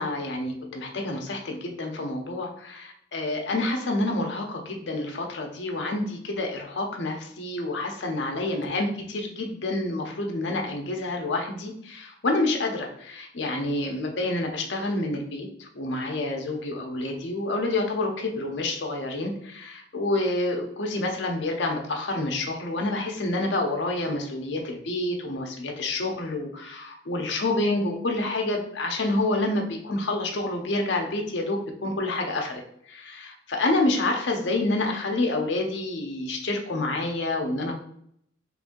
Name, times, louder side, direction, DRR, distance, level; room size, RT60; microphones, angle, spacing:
voice 1, 0.0-32.6 32.9-37.7, left 2 dB, 70° left, 2 dB, 0.7 m, -28 dB
3.2 x 2.6 x 3.7 m, 0.70 s
head